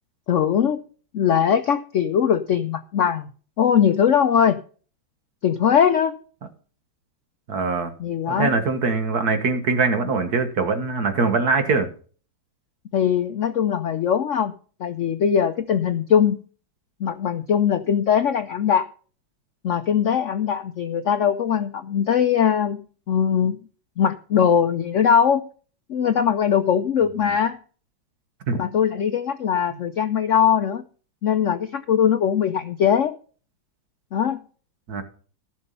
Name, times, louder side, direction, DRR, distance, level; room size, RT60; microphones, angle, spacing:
voice 1, 0.3-0.8 1.1-3.3 3.6-4.6 5.4-6.2 8.0-8.6 12.9-14.5 14.8-16.4 17.0-18.9 19.6-23.6 24.0-25.5 25.9-27.6 28.5-30.8 31.2-33.2 34.1-34.4, left 8 dB, 85° left, 9 dB, 0.6 m, -21 dB
voice 2, 7.5-7.9 8.3-11.9 28.5-28.6 34.9-35.0, right 4 dB, 55° right, 8 dB, 1.8 m, -22 dB
15.0 x 6.3 x 5.4 m, 0.40 s
omnidirectional pair, 2.2 m